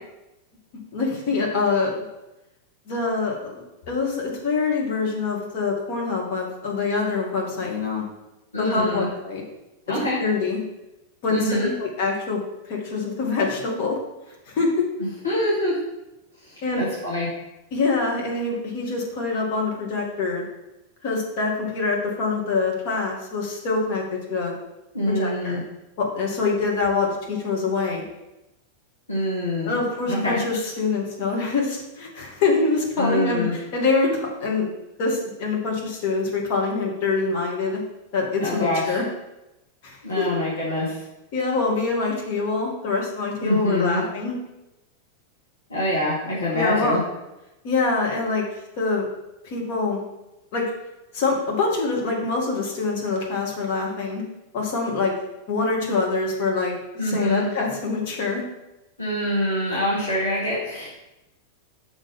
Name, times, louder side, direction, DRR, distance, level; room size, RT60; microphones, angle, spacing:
voice 1, 0.9-1.9 2.9-8.0 8.6-9.4 10.2-10.6 11.2-12.4 12.7-14.0 14.5-14.9 16.6-16.8 17.7-20.4 21.0-24.5 25.1-25.6 26.0-28.0 29.6-34.7 35.0-37.8 38.1-39.1 39.8-40.3 41.3-44.4 46.5-47.0 47.6-48.4 48.8-49.1 49.4-50.0 50.5-50.6 51.1-54.2 54.5-55.1 55.5-58.4, left 4 dB, 50° left, -1 dB, 1.9 m, -25 dB
voice 2, 8.5-9.1 9.9-10.2 11.3-11.7 15.2-15.7 16.4-17.3 24.9-25.6 29.1-29.7 30.1-30.4 33.0-33.5 38.4-39.0 40.0-40.9 43.4-44.0 45.7-47.0 57.0-57.5 59.0-60.9, left 1 dB, 75° left, -8 dB, 1.9 m, -25 dB
6.1 x 3.9 x 5.2 m, 0.96 s
figure-of-eight pair, 90°, 0 cm